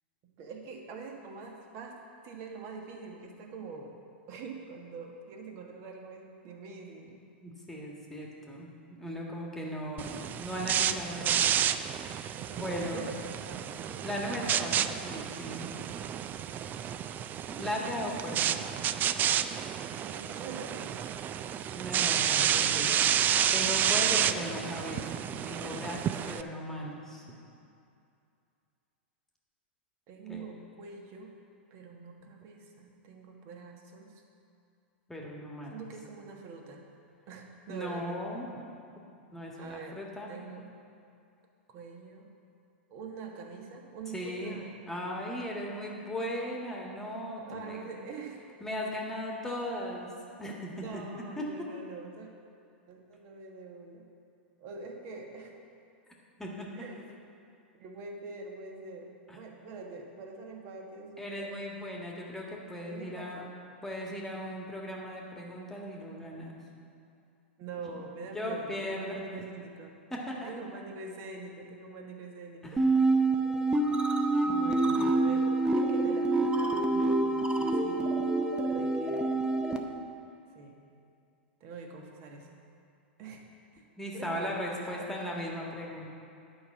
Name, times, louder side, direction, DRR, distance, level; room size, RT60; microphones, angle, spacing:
voice 1, 0.4-2.0 2.2-3.9 4.3-7.2 12.3-14.4 20.0-21.0 30.1-31.3 31.7-34.2 35.7-36.8 37.3-38.2 39.6-40.6 41.7-42.3 42.9-44.8 47.4-48.4 50.7-52.3 52.9-54.1 54.6-55.5 56.7-57.0 57.8-61.5 62.9-63.5 67.6-69.9 70.4-72.8 75.1-75.5 75.7-78.2 78.7-79.3 80.5-80.8 81.6-82.6 83.2-83.5 83.7-83.8 84.1-85.5, right 4 dB, 45° right, 2 dB, 1.5 m, -45 dB
voice 2, 7.4-8.7 9.0-11.6 11.9-13.1 14.0-15.7 16.7-16.9 17.5-18.7 21.7-23.0 23.5-25.1 25.4-27.4 30.3-30.5 35.1-35.8 37.7-38.5 39.3-40.3 44.1-44.6 44.9-47.8 48.6-50.1 50.4-51.7 56.4-56.7 59.3-59.4 61.2-63.4 63.8-66.6 67.9-68.0 68.3-69.2 70.1-70.5 72.6-72.9 74.4-75.2 84.0-86.1, equal, 5° left, -2 dB, 1.5 m, -37 dB
sound 1, 10.0-26.4, right 9 dB, 30° right, 0.4 m, -30 dB
sound 2, 72.8-79.8, right 2 dB, 15° right, 0.7 m, -26 dB
9.5 x 5.4 x 7.2 m, 2.5 s
hypercardioid pair, 100°, 6 cm